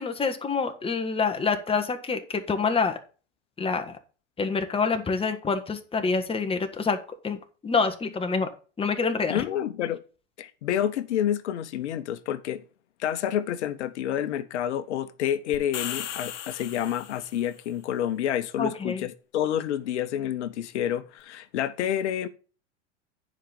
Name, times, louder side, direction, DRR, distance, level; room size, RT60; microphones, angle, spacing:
voice 1, 0.0-3.0 3.6-4.0 4.4-7.0 7.2-8.5 8.8-9.4 18.6-19.0, left 4 dB, 15° left, 1.5 m, -27 dB
voice 2, 9.3-10.0 10.4-12.6 13.0-22.3, left 10 dB, 70° left, 1.0 m, -29 dB
sound 1, 15.5-17.5, left 11 dB, 55° left, 1.6 m, -36 dB
10.0 x 5.3 x 5.4 m
hypercardioid pair, 95°, 36 cm